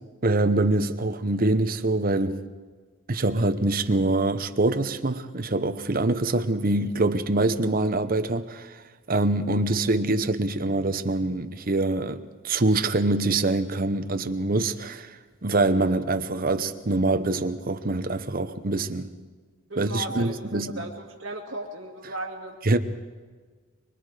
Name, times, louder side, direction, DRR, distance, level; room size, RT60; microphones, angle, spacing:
voice 1, 0.2-2.4 3.1-8.8 9.1-19.1 19.8-20.9 22.6-22.8, right 2 dB, 45° right, 0.9 m, -24 dB
voice 2, 19.7-22.8, right 1 dB, 70° right, 2.4 m, -36 dB
24.5 x 23.5 x 5.0 m
head